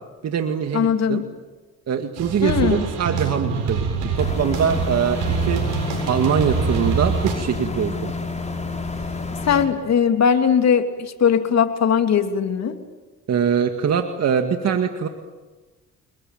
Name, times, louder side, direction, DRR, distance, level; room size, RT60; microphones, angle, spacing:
voice 1, 0.2-1.2 1.9-5.6 6.1-8.1 13.3-15.1, right 7 dB, 60° right, 6 dB, 2.1 m, -23 dB
voice 2, 0.7-1.3 2.4-2.8 9.4-12.7, left 7 dB, 60° left, 7 dB, 2.9 m, -19 dB
sound 1, 2.2-7.3, right 5 dB, 85° right, 7.5 m, -25 dB
sound 2, 4.2-9.7, left 3 dB, 20° left, 5.3 m, -29 dB
29.5 x 21.0 x 9.1 m, 1.2 s
cardioid pair, 90°, 30 cm